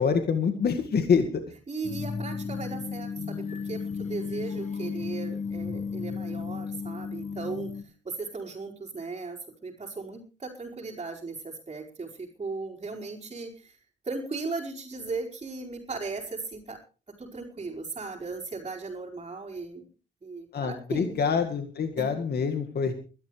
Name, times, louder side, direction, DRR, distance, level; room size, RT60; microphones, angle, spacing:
voice 1, 0.0-1.4 20.5-22.9, left 6 dB, 55° left, 6 dB, 1.9 m, -26 dB
voice 2, 1.7-13.8 14.0-16.8 17.1-19.9 20.2-21.2 22.0-22.1, right 4 dB, 30° right, -5 dB, 4.8 m, -37 dB
sound 1, 1.8-7.8, left 5 dB, 35° left, 1.4 m, -34 dB
22.0 x 12.5 x 3.3 m, 0.35 s
cardioid pair, 90°, 20 cm